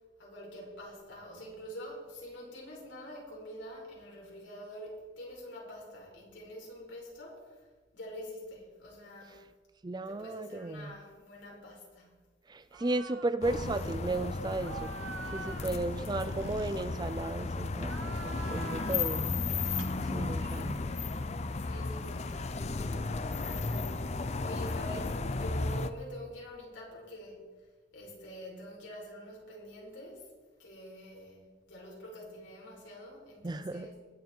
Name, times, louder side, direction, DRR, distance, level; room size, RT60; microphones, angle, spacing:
voice 1, 0.2-7.7 7.9-9.5 10.1-12.2 15.8-16.3 20.2-20.8 21.5-23.0 23.4-27.4 27.9-30.3 30.6-34.0, equal, 75° left, -3 dB, 5.1 m, -46 dB
voice 2, 9.8-10.9 12.5-14.9 15.3-19.3 20.1-20.9 33.4-33.9, right 2 dB, 20° right, 12 dB, 0.4 m, -35 dB
sound 1, 12.7-13.3 13.6-14.0 14.6-17.4 17.8-19.2 19.6-20.7 21.8-23.6, right 4 dB, 85° right, 0.9 m, -46 dB
sound 2, 13.4-25.9, left 3 dB, 35° left, 0.5 m, -34 dB
21.0 x 8.3 x 4.6 m, 1.4 s
head